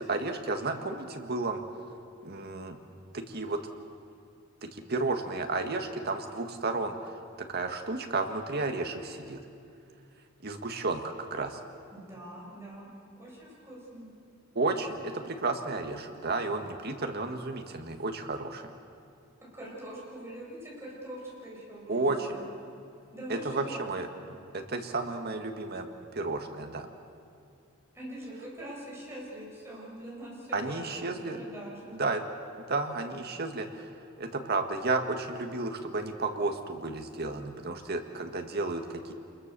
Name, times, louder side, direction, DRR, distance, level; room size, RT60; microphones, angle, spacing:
voice 1, 0.0-1.6 2.2-2.8 3.1-3.6 4.6-7.1 7.4-9.4 10.4-11.6 14.6-18.7 21.9-22.4 23.3-25.9 26.1-26.9 30.5-31.4 32.0-32.2 32.7-33.9 34.2-39.1, right 3 dB, 50° right, 5 dB, 1.8 m, -32 dB
voice 2, 11.9-12.9 13.2-14.1 19.5-22.4 23.1-23.9 27.9-31.9, right 1 dB, 15° right, -5 dB, 7.9 m, -43 dB
27.5 x 21.5 x 7.0 m, 2.5 s
head